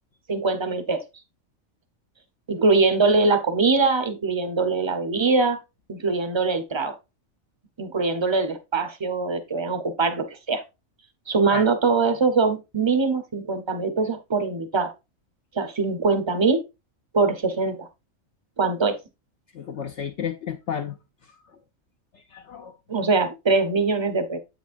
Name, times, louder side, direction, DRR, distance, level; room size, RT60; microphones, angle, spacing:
voice 1, 0.3-1.0 2.5-5.6 5.9-6.9 7.8-10.6 11.3-14.9 15.5-16.6 17.1-17.9 18.6-19.0 22.9-24.4, right 4 dB, 25° right, 0.6 m, -22 dB
voice 2, 19.5-21.0 22.1-22.7, left 8 dB, 65° left, 0.8 m, -32 dB
8.1 x 6.1 x 2.5 m
omnidirectional pair, 1.4 m